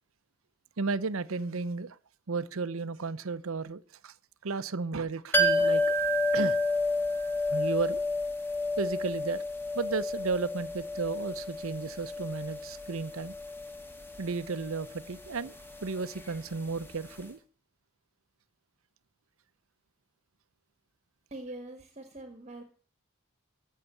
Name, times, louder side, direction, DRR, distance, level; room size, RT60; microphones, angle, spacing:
voice 1, 0.8-2.0 2.3-4.1 4.4-6.0 6.3-6.6 7.5-8.0 8.8-9.4 9.7-13.3 14.2-15.5 15.8-17.4, right 4 dB, 75° right, 0.7 m, -33 dB
sound 1, 5.3-16.9 17.2-17.3, left 1 dB, 10° left, 2.0 m, -31 dB
voice 2, 21.3-22.6, right 1 dB, 30° right, 1.7 m, -43 dB
15.0 x 6.7 x 9.9 m
head